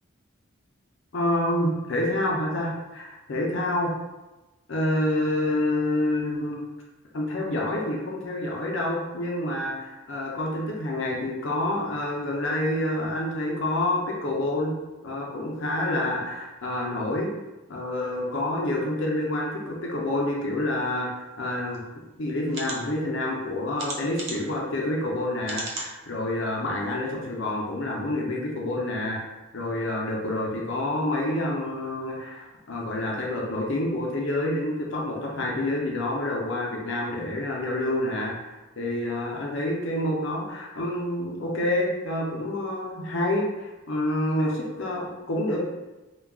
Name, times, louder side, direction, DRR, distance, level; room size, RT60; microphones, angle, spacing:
voice 1, 1.1-3.9 4.7-6.6 7.1-14.7 15.0-17.3 17.7-21.8 22.2-29.2 29.5-45.6, left 1 dB, 60° left, -2 dB, 0.5 m, -28 dB
sound 1, 21.7-21.8 22.5-22.8 23.8-24.5 25.4-25.9 26.5-26.6 26.9-27.0, right 2 dB, 60° right, 0.5 m, -35 dB
2.3 x 2.2 x 3.4 m, 1.1 s
head